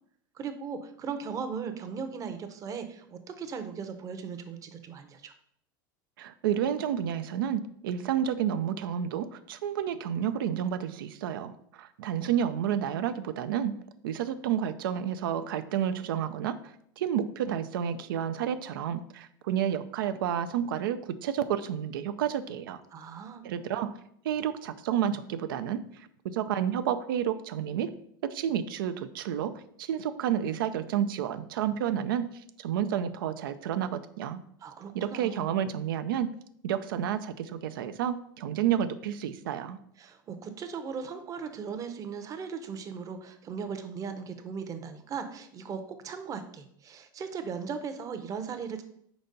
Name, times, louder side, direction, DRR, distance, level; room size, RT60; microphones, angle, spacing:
voice 1, 0.3-5.3 22.9-23.5 34.6-35.5 40.0-48.8, right 6 dB, 30° right, 8 dB, 0.7 m, -38 dB
voice 2, 6.2-13.7 14.0-22.8 23.4-23.9 24.2-26.1 26.3-27.9 28.2-32.3 32.6-33.9 34.2-34.4 34.9-36.3 36.6-39.8, right 9 dB, 85° right, 11 dB, 0.5 m, -30 dB
4.5 x 4.1 x 5.2 m, 0.69 s
supercardioid pair, 120°, 11 cm